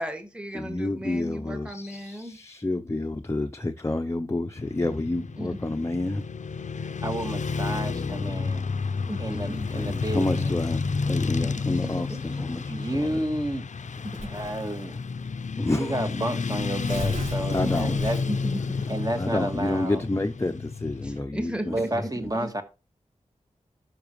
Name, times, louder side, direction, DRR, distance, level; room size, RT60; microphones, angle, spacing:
voice 1, 0.0-2.4 5.4-5.6 9.1-9.9 11.4-12.4 17.6-18.9 21.0-22.1 22.4-22.5, equal, 10° right, 2.0 m, -36 dB
voice 2, 0.5-6.2 9.7-13.2 15.6-16.1 17.5-18.0 19.2-22.1, left 2 dB, 20° left, 0.7 m, -29 dB
Motorcycle / Traffic noise roadway noise, 4.6-21.2, left 4 dB, 70° left, 0.6 m, -30 dB
voice 3, 7.0-8.6 9.2-10.5 12.7-13.7 14.2-15.0 15.7-18.2 18.9-20.0 21.7-22.6, right 1 dB, 30° right, 1.9 m, -31 dB
Tearing, 14.1-14.5 15.4-15.5 15.8-15.9 16.6-18.5, right 2 dB, 80° right, 4.8 m, -37 dB
12.5 x 6.0 x 3.1 m
wide cardioid pair, 90°, 13 cm